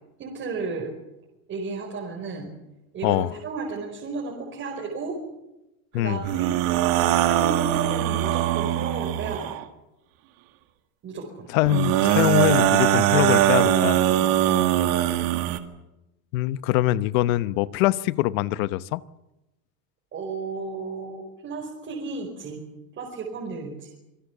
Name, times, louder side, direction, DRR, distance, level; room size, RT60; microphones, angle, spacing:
voice 1, 0.2-0.9 1.5-2.5 2.9-5.2 5.9-6.5 7.2-9.6 11.0-11.5 14.2-14.4 20.1-22.6 23.0-23.9, right 4 dB, 25° right, -2 dB, 5.1 m, -33 dB
voice 2, 3.0-3.3 5.9-6.2 11.5-14.0 16.3-19.0, left 16 dB, 65° left, 16 dB, 1.0 m, -23 dB
sound 1, 6.2-9.6 11.6-15.6, right 12 dB, 50° right, 2.2 m, -21 dB
26.0 x 22.5 x 7.3 m, 0.93 s
cardioid pair, 170°, 44 cm